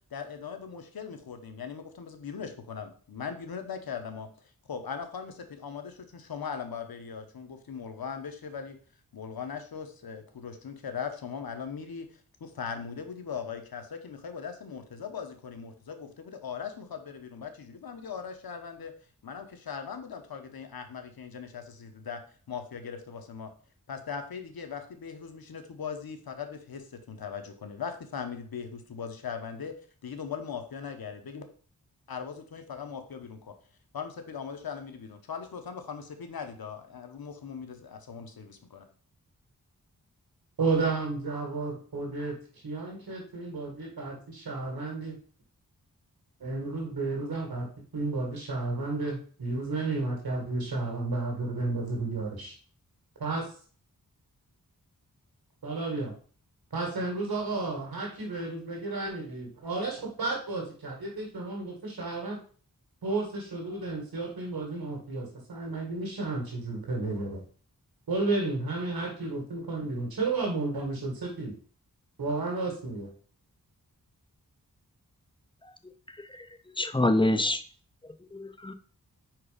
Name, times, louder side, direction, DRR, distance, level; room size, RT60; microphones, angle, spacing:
voice 1, 0.1-4.3 4.7-8.8 9.1-12.1 12.4-18.9 19.2-22.2 22.5-23.5 23.9-29.8 30.0-31.4 32.1-33.5 33.9-38.8, left 6 dB, 85° left, 7 dB, 1.0 m, -39 dB
voice 2, 40.6-45.2 46.4-47.7 47.9-52.5 53.2-53.5 55.6-56.1 56.7-62.4 63.0-67.4 68.1-71.5 72.2-73.1, right 3 dB, 80° right, 0 dB, 1.9 m, -32 dB
voice 3, 76.8-77.6 78.3-78.7, left 1 dB, 15° left, 10 dB, 0.6 m, -26 dB
4.8 x 4.6 x 5.1 m, 0.43 s
wide cardioid pair, 70°, 36 cm